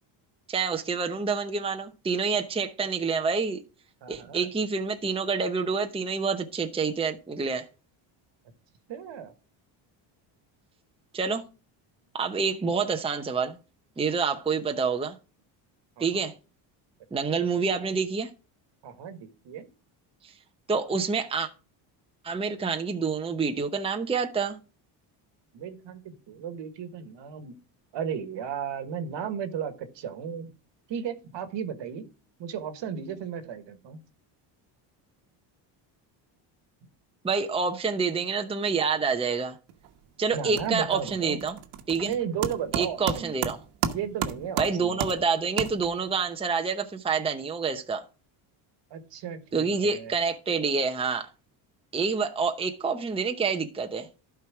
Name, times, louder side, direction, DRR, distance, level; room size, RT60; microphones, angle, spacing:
voice 1, 0.5-3.6 4.1-7.7 11.1-11.4 12.1-13.6 14.0-15.2 16.0-16.3 17.1-18.3 20.2-20.3 20.7-21.5 22.2-24.6 37.2-39.6 40.2-41.6 41.9-42.1 42.7-43.6 44.6-48.0 49.5-51.3 51.9-54.1, right 5 dB, 10° right, 0.8 m, -27 dB
voice 2, 4.0-4.5 8.9-9.3 16.0-16.1 17.1-17.9 18.8-19.7 25.5-27.5 27.9-30.5 30.9-32.1 32.4-34.0 40.3-41.4 42.0-43.4 43.9-45.0 48.9-50.1, right 8 dB, 60° right, 1.4 m, -35 dB
sound 1, 39.7-40.1 40.3-46.2, right 8 dB, 80° right, 1.3 m, -34 dB
12.0 x 4.7 x 4.7 m
cardioid pair, 100°, 50 cm